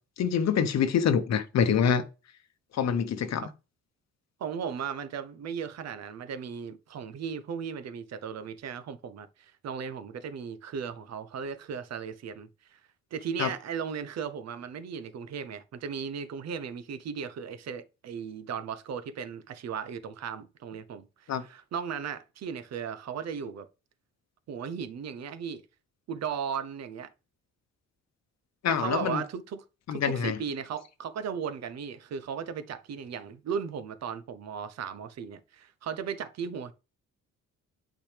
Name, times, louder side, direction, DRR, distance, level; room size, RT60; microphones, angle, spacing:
voice 1, 0.2-2.0 2.7-3.4 13.4-13.5 21.3-21.4 28.6-29.2 29.9-30.4, left 7 dB, 60° left, 0.9 m, -25 dB
voice 2, 4.4-12.8 13.1-23.7 24.5-25.6 26.1-27.1 28.7-29.6 29.9-36.7, right 7 dB, 60° right, 0.8 m, -36 dB
8.4 x 5.9 x 3.4 m
cardioid pair, 90°, 30 cm